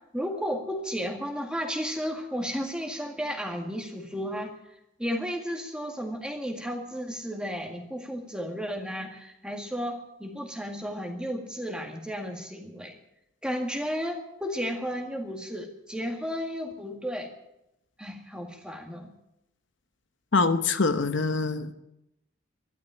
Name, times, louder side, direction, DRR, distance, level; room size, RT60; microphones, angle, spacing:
voice 1, 0.1-4.5 5.0-12.9 13.4-17.3 18.0-19.1, equal, 5° right, 3 dB, 1.8 m, -33 dB
voice 2, 20.3-21.7, left 4 dB, 65° left, 9 dB, 0.9 m, -24 dB
13.0 x 12.0 x 8.8 m, 0.85 s
head